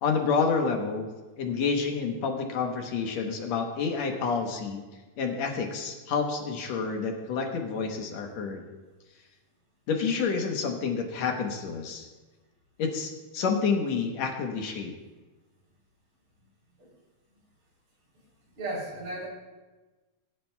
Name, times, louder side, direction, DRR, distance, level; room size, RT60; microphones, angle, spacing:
voice 1, 0.0-1.1 1.4-4.8 5.2-8.6 9.9-12.1 12.8-14.9, left 5 dB, 70° left, 3 dB, 2.1 m, -29 dB
voice 2, 18.6-19.3, right 2 dB, 65° right, -4 dB, 4.9 m, -35 dB
21.0 x 11.0 x 2.3 m, 1.2 s
omnidirectional pair, 3.5 m